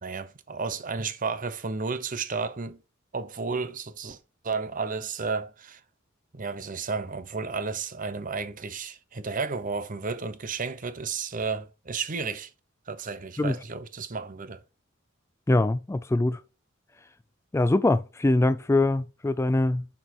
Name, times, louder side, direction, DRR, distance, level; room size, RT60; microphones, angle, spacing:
voice 1, 0.0-2.8 3.1-4.2 4.4-5.8 6.3-12.5 12.9-14.6, right 4 dB, 40° right, 0.8 m, -32 dB
voice 2, 15.5-16.4 17.5-19.9, left 2 dB, 15° left, 0.3 m, -23 dB
7.0 x 6.2 x 4.7 m
head